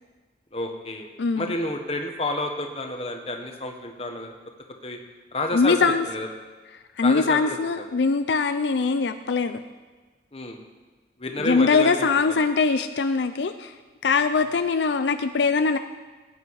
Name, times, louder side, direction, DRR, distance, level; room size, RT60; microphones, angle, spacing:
voice 1, 0.5-1.1 1.4-4.3 4.8-5.0 5.3-6.3 7.0-7.9 10.3-10.6 11.2-12.1, left 2 dB, 35° left, 3 dB, 1.4 m, -30 dB
voice 2, 1.2-1.5 5.5-6.1 7.0-9.6 11.4-13.7 14.0-15.8, left 4 dB, 75° left, 9 dB, 0.5 m, -22 dB
18.5 x 9.5 x 4.8 m, 1.3 s
head